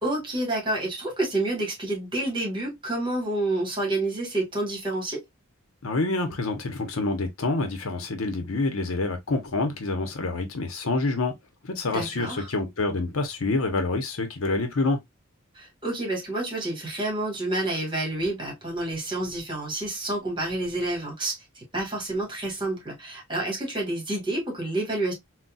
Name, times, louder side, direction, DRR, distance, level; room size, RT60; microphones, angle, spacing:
voice 1, 0.0-5.2 11.9-12.5 15.5-21.4 21.7-25.1, right 2 dB, 25° right, 1.5 m, -29 dB
voice 2, 5.8-11.3 11.6-15.0, left 3 dB, 75° left, 0.8 m, -27 dB
4.0 x 2.2 x 2.2 m
head